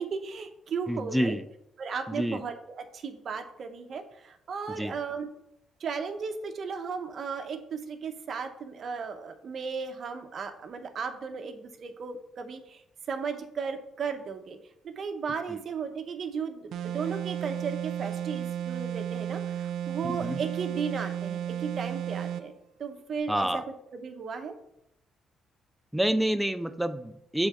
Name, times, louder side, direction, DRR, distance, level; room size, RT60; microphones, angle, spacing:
voice 1, 0.0-1.4 1.8-5.3 5.8-12.8 13.1-14.6 14.8-22.5 22.8-23.6 23.9-24.6, right 5 dB, 55° right, 7 dB, 0.9 m, -35 dB
voice 2, 0.9-1.4 2.1-2.4 4.8-4.9 20.0-20.4 23.3-23.6 25.9-27.5, right 1 dB, 5° right, 10 dB, 0.4 m, -28 dB
sound 1, 16.7-22.5, right 10 dB, 75° right, 0.5 m, -33 dB
7.0 x 3.8 x 5.7 m, 0.79 s
cardioid pair, 90°, 0 cm